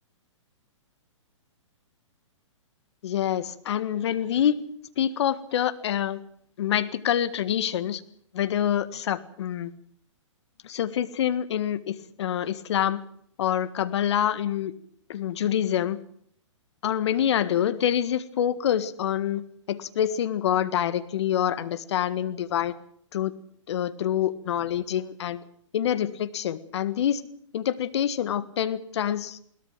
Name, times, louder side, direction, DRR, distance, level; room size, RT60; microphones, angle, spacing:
voice 1, 3.0-4.6 5.0-6.2 6.6-8.0 8.3-9.7 10.6-13.0 13.4-14.7 15.1-16.0 16.8-19.4 19.7-22.8 23.1-23.3 23.7-25.4 25.7-27.2 27.5-29.4, left 10 dB, 60° left, 14 dB, 1.7 m, -26 dB
22.0 x 18.0 x 7.5 m, 0.64 s
hypercardioid pair, 130°, 16 cm